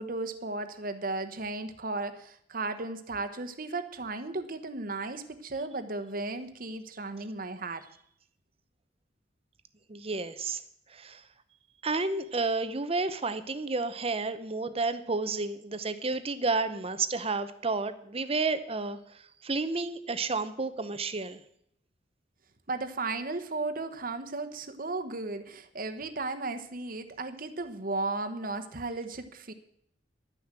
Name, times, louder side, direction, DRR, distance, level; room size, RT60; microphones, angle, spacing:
voice 1, 0.0-7.9 22.7-29.5, right 3 dB, 50° right, 8 dB, 1.2 m, -35 dB
voice 2, 9.9-10.6 10.9-11.2 11.8-21.4, right 3 dB, 35° right, 12 dB, 0.8 m, -31 dB
11.5 x 9.7 x 7.5 m, 0.69 s
head